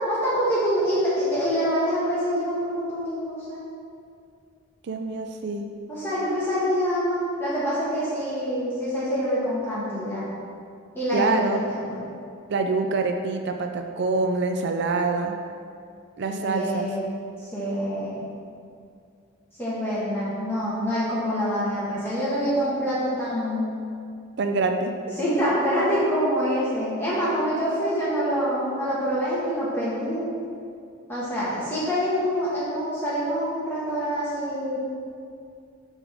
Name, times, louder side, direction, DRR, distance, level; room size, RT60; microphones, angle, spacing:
voice 1, 0.0-3.6 5.9-10.3 10.9-12.1 16.3-17.1 17.4-18.3 19.6-23.7 25.2-30.3 31.1-34.8, equal, 10° left, -10 dB, 1.3 m, -26 dB
voice 2, 4.8-5.6 11.1-11.6 12.5-15.4 16.2-16.9 24.4-25.2, right 3 dB, 55° right, 5 dB, 0.4 m, -25 dB
7.0 x 3.6 x 6.0 m, 2.3 s
head